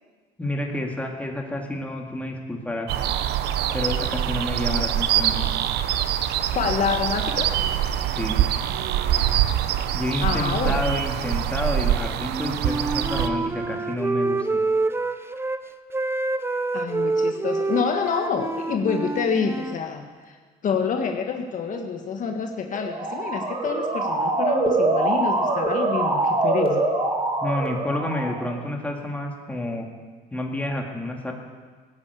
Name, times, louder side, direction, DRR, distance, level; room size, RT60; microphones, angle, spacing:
voice 1, 0.4-2.9 3.7-5.5 8.1-8.4 9.9-14.4 27.4-29.9 30.3-31.3, left 1 dB, 10° left, 1 dB, 2.3 m, -29 dB
sound 1, 2.9-13.3, right 11 dB, 80° right, 0.8 m, -24 dB
voice 2, 6.5-7.5 10.2-10.9 16.7-20.3 20.6-26.8, left 6 dB, 50° left, 3 dB, 1.4 m, -27 dB
Wind instrument woodwind instrument, 12.2-15.6 15.9-19.8, right 3 dB, 15° right, 0.7 m, -27 dB
Motor vehicle (road) / Siren, 22.7-28.6, right 2 dB, 35° right, 2.6 m, -24 dB
16.5 x 8.9 x 8.4 m, 1.5 s
cardioid pair, 110°, 17 cm